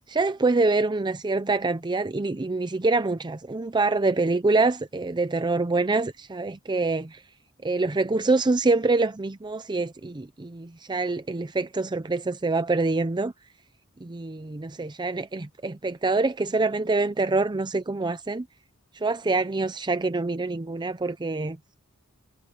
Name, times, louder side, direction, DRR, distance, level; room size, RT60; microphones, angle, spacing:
voice 1, 0.1-7.2 7.6-13.3 14.0-18.5 19.0-21.6, right 3 dB, 20° right, 0.5 m, -25 dB
head